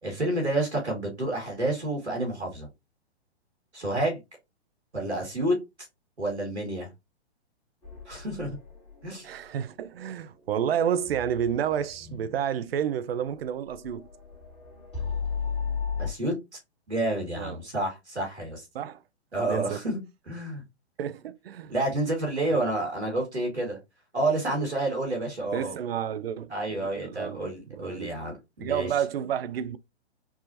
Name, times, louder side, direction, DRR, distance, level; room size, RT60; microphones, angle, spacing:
voice 1, 0.0-2.7 3.7-4.2 4.9-5.5 6.2-6.9 8.1-8.5 9.0-9.3 16.0-16.3 16.9-18.7 19.3-20.0 20.3-20.6 21.7-23.8 24.1-25.8 26.5-28.9, right 1 dB, 85° right, 2.3 m, -29 dB
sound 1, 7.8-16.1, left 6 dB, 15° left, 1.8 m, -37 dB
voice 2, 9.2-14.1 17.4-17.6 18.7-19.0 19.5-19.8 21.0-21.7 25.5-27.4 27.7-28.1 28.6-29.8, right 9 dB, 65° right, 0.5 m, -30 dB
4.7 x 2.4 x 2.8 m
figure-of-eight pair, 125°, 33 cm